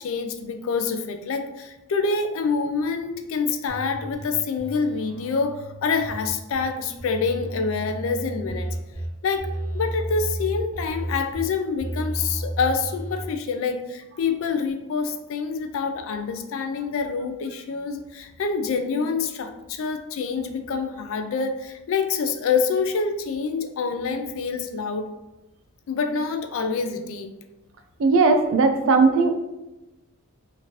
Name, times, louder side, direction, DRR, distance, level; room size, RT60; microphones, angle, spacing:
voice 1, 0.0-8.7 9.2-9.5 9.7-25.1 25.9-27.3, left 5 dB, 65° left, 7 dB, 0.3 m, -26 dB
sound 1, 3.7-4.2 4.6-6.6 7.0-9.1 9.4-11.4 11.8-13.2, right 1 dB, 30° left, 1.1 m, -33 dB
voice 2, 28.0-29.3, right 4 dB, 60° right, 6 dB, 0.3 m, -18 dB
2.9 x 2.5 x 2.9 m, 1.0 s
head